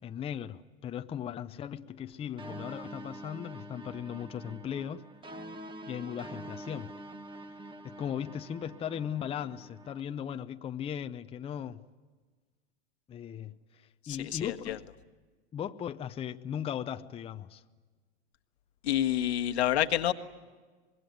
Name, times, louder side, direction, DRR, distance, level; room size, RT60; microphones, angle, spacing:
voice 1, 0.0-5.1 5.9-6.9 7.8-11.8 13.1-14.8 15.5-17.6, left 9 dB, 20° left, 0.7 m, -38 dB
sound 1, 2.4-10.0, right 1 dB, 15° right, 1.4 m, -46 dB
voice 2, 14.0-14.8 18.8-20.1, left 12 dB, 80° left, 1.5 m, -28 dB
25.0 x 21.5 x 9.4 m
hypercardioid pair, 115°, 33 cm